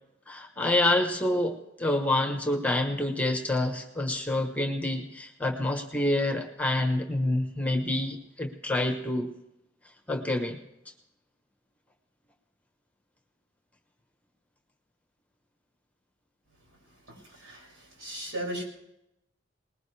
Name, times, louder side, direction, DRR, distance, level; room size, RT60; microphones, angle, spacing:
voice 1, 0.3-9.3 10.1-10.6, left 1 dB, 5° left, 4 dB, 1.1 m, -27 dB
voice 2, 17.1-18.6, right 1 dB, 80° right, -2 dB, 6.3 m, -37 dB
20.0 x 19.5 x 3.4 m, 0.85 s
head